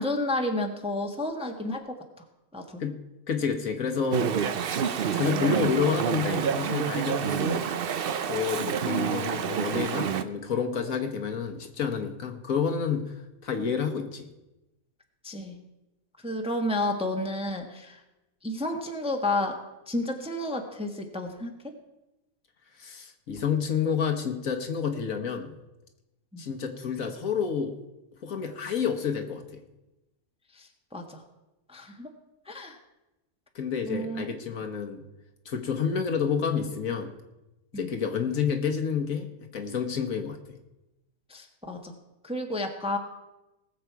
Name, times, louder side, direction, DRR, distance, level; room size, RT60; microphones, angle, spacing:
voice 1, 0.0-2.2 2.5-2.8 15.2-15.6 16.2-18.0 18.4-19.6 19.9-21.7 26.3-26.4 30.5-31.2 31.7-32.1 32.4-32.8 33.9-34.3 37.7-37.9 41.3-42.0 42.2-43.0, left 1 dB, 5° right, 3 dB, 1.0 m, -31 dB
voice 2, 3.3-4.3 5.1-7.6 8.2-13.1 13.4-14.3 22.8-25.5 26.4-27.8 28.2-29.6 33.5-35.0 35.4-37.1 37.7-40.6, left 6 dB, 60° left, 5 dB, 1.5 m, -29 dB
Chatter / Stream, 4.1-10.2, right 7 dB, 60° right, 0.6 m, -28 dB
19.5 x 7.5 x 4.6 m, 0.98 s
omnidirectional pair, 1.6 m